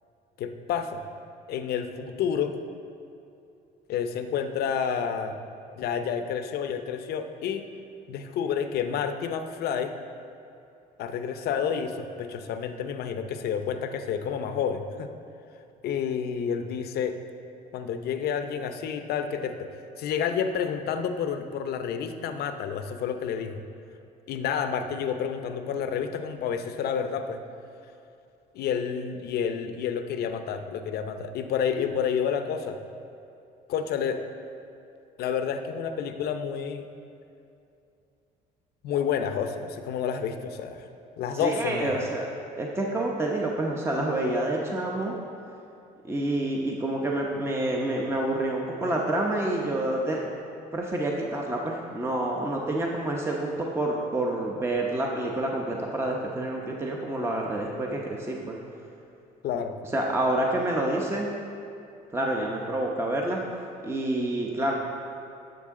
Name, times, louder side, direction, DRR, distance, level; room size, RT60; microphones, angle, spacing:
voice 1, 0.4-1.0 1.5-2.5 3.9-5.4 5.8-7.6 8.1-9.9 11.0-15.1 15.8-17.2 17.7-19.7 20.0-23.6 24.3-27.4 28.5-32.8 33.7-34.2 35.2-36.8 38.8-40.8 41.2-42.0 59.4-59.8, left 7 dB, 70° left, 8 dB, 0.7 m, -29 dB
voice 2, 41.4-42.2 42.6-45.1 46.0-50.2 50.7-58.6 59.9-61.3 62.1-63.4 63.8-64.7, right 1 dB, 15° right, -1 dB, 0.8 m, -28 dB
11.5 x 6.8 x 3.7 m, 2.6 s
cardioid pair, 110°, 17 cm